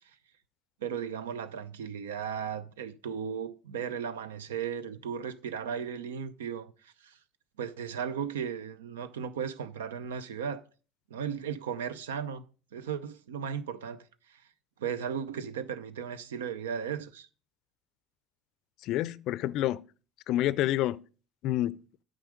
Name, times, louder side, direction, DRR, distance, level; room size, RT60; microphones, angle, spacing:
voice 1, 0.8-7.2 7.6-10.6 11.1-12.4 12.7-14.4 14.8-17.3, right 7 dB, 80° right, 0.6 m, -36 dB
voice 2, 18.8-19.8 20.3-21.0 21.4-21.8, left 14 dB, 60° left, 0.4 m, -28 dB
9.0 x 5.1 x 5.1 m
hypercardioid pair, 70°, 0 cm